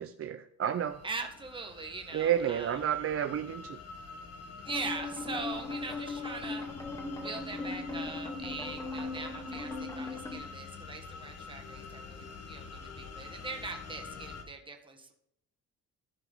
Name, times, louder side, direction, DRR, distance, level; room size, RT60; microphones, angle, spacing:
voice 1, 0.0-1.0 2.1-3.8, right 9 dB, 40° right, 8 dB, 0.5 m, -31 dB
sound 1, 0.7-14.4, left 4 dB, 45° left, 1.4 m, -47 dB
voice 2, 1.0-2.8 4.6-6.7 7.2-15.1, right 3 dB, 15° right, 3 dB, 1.5 m, -41 dB
sound 2, 4.7-10.4, left 3 dB, 10° left, 2.2 m, -38 dB
13.5 x 4.7 x 3.9 m, 0.74 s
cardioid pair, 100°, 34 cm